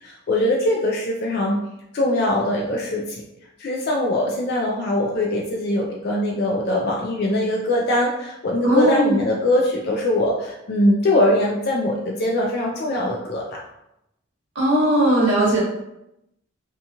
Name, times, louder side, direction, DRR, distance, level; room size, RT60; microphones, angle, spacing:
voice 1, 0.0-1.6 1.9-3.2 3.6-13.4, left 1 dB, 50° left, -1 dB, 0.3 m, -22 dB
voice 2, 8.6-9.2 14.5-15.6, right 1 dB, 60° right, -5 dB, 1.0 m, -18 dB
2.8 x 2.3 x 2.7 m, 0.84 s
head